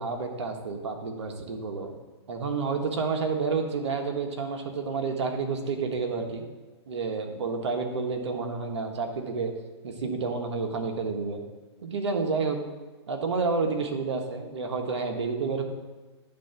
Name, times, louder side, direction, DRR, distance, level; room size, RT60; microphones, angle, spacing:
voice 1, 0.0-1.9 2.3-6.4 6.9-9.5 9.8-11.4 11.8-12.6 13.1-15.6, right 4 dB, 75° right, 4 dB, 1.5 m, -30 dB
10.0 x 3.8 x 5.9 m, 1.3 s
hypercardioid pair, 135°, 15 cm